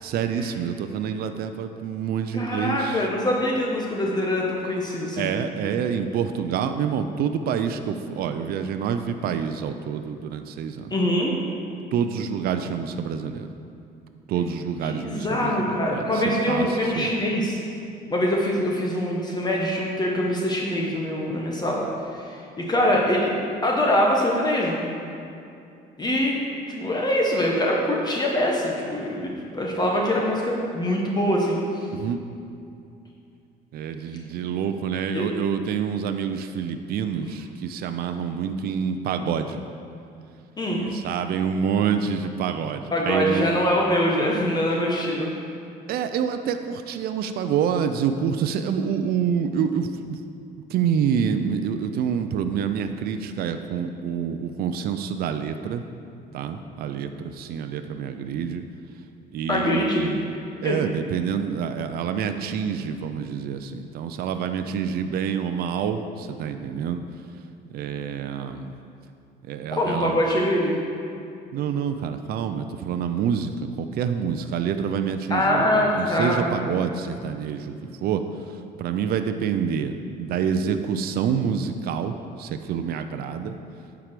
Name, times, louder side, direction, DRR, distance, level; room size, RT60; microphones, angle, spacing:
voice 1, 0.0-3.1 5.2-10.9 11.9-13.5 14.3-17.1 31.9-32.2 33.7-39.6 40.7-43.5 45.9-50.2 50.7-55.9 56.3-58.6 59.3-60.3 60.6-67.0 67.7-68.7 69.4-70.2 71.5-77.7 78.0-79.9 80.2-83.6, right 7 dB, 65° right, 8 dB, 0.5 m, -27 dB
voice 2, 2.3-5.3 10.9-11.3 14.8-17.6 18.1-21.8 22.1-23.3 23.6-24.9 26.0-31.9 35.1-35.3 40.6-40.8 42.9-45.3 59.5-60.1 60.6-60.8 69.7-70.8 75.3-76.5, left 1 dB, 25° left, -2 dB, 1.2 m, -24 dB
9.2 x 4.8 x 6.7 m, 2.5 s
cardioid pair, 110°, 17 cm